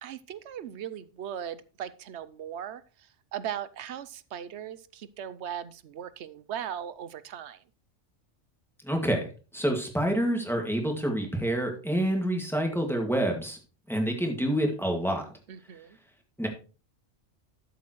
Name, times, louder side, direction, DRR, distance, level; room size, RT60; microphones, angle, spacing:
voice 1, 0.0-2.8 3.3-7.6 15.5-16.0, right 9 dB, 70° right, 15 dB, 0.9 m, -38 dB
voice 2, 8.8-9.3 9.5-13.6 13.9-15.3 16.4-16.5, right 1 dB, ahead, 2 dB, 1.9 m, -27 dB
12.5 x 7.3 x 3.1 m, 0.34 s
omnidirectional pair, 1.2 m